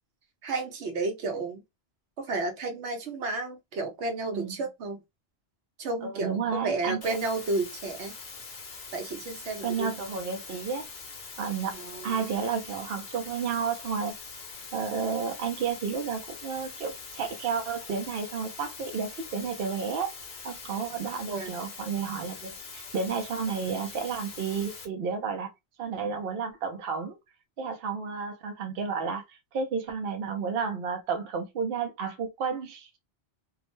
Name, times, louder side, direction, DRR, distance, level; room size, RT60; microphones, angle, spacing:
voice 1, 0.4-1.6 2.2-5.0 5.8-8.1 8.9-9.9 11.7-12.2 21.3-21.5, right 3 dB, 80° right, 1.0 m, -32 dB
voice 2, 6.0-7.1 9.6-10.9 11.4-14.1 14.7-20.1 20.4-25.5 25.8-27.2 27.6-33.0, right 6 dB, 65° right, 0.8 m, -32 dB
sound 1, 7.0-24.9, left 4 dB, 50° left, 0.8 m, -43 dB
2.6 x 2.1 x 2.9 m
omnidirectional pair, 1.1 m